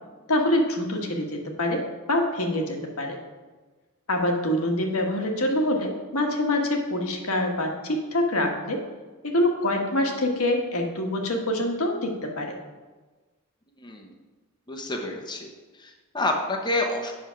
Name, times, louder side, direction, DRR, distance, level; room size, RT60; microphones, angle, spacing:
voice 1, 0.3-3.2 4.1-8.8 9.2-12.6, left 1 dB, 75° left, 2 dB, 1.4 m, -25 dB
voice 2, 14.7-15.5 15.8-17.1, left 2 dB, 20° left, 1 dB, 0.9 m, -28 dB
8.1 x 6.2 x 5.8 m, 1.3 s
head